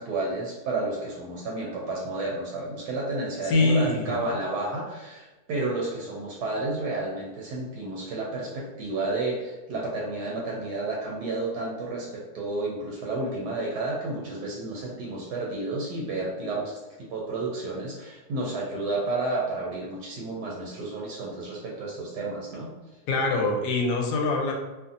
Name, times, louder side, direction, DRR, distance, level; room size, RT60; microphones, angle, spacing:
voice 1, 0.0-12.1 12.3-16.8 17.1-22.7, right 2 dB, 80° right, -3 dB, 1.1 m, -31 dB
voice 2, 3.4-4.3 23.1-24.5, left 3 dB, 85° left, 2 dB, 1.2 m, -24 dB
2.7 x 2.5 x 2.5 m, 1.1 s
omnidirectional pair, 1.7 m